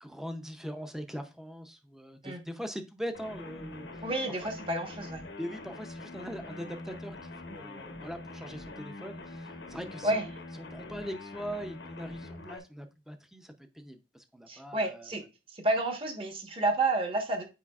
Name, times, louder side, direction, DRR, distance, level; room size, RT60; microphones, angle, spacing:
voice 1, 0.0-4.5 5.4-7.2 7.4-10.3 10.6-15.1, equal, ahead, 0.6 m, -41 dB
sound 1, 3.1-12.6, left 2 dB, 85° left, 1.0 m, -44 dB
voice 2, 4.0-5.2 10.0-10.3 14.5-15.2 15.5-17.4, right 2 dB, 30° right, 1.2 m, -30 dB
8.3 x 4.9 x 2.4 m
head